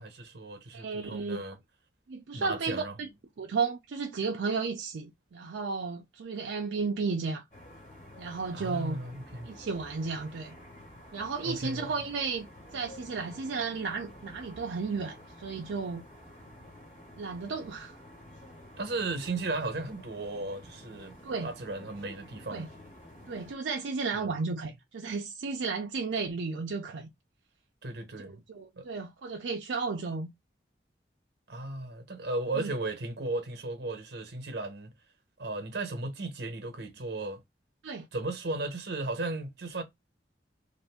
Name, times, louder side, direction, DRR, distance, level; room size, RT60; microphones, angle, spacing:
voice 1, 0.0-1.6 2.3-2.9 8.5-9.5 11.4-11.9 18.8-21.2 21.4-22.7 24.1-24.3 27.8-28.4 28.8-28.9 31.5-34.9 35.4-37.4 38.1-39.8, right 2 dB, 60° right, 0.8 m, -35 dB
voice 2, 0.7-1.4 2.1-3.1 3.4-7.4 8.2-9.0 9.4-10.6 11.1-16.1 17.2-18.0 21.2-21.5 22.5-22.7 23.3-27.1 28.2-30.3 32.6-32.7 37.8-38.1, right 4 dB, 80° right, 0.4 m, -33 dB
sound 1, 7.5-23.5, left 1 dB, 35° left, 1.5 m, -50 dB
2.6 x 2.5 x 3.4 m
head